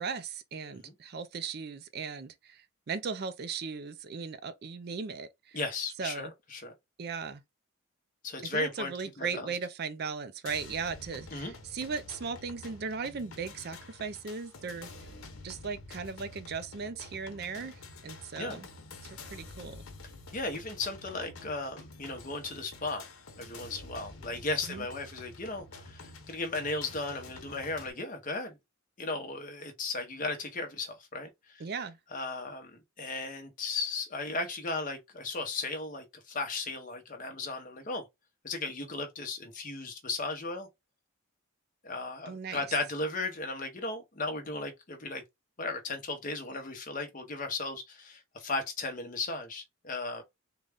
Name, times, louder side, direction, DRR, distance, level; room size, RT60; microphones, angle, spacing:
voice 1, 0.0-5.6 6.0-6.3 7.0-7.4 8.5-14.9 15.4-18.7 19.0-19.8 24.7-24.9 31.6-32.0 42.3-42.7, right 5 dB, 50° right, 0.4 m, -37 dB
voice 2, 5.5-6.7 8.2-8.9 9.2-9.5 11.3-11.5 18.4-18.6 20.3-23.1 23.4-28.6 29.0-31.6 32.1-38.0 38.4-40.7 41.8-45.2 45.6-50.2, left 3 dB, 40° left, 0.8 m, -36 dB
sound 1, 10.5-27.9, left 3 dB, 90° left, 0.9 m, -48 dB
3.9 x 2.3 x 3.4 m
head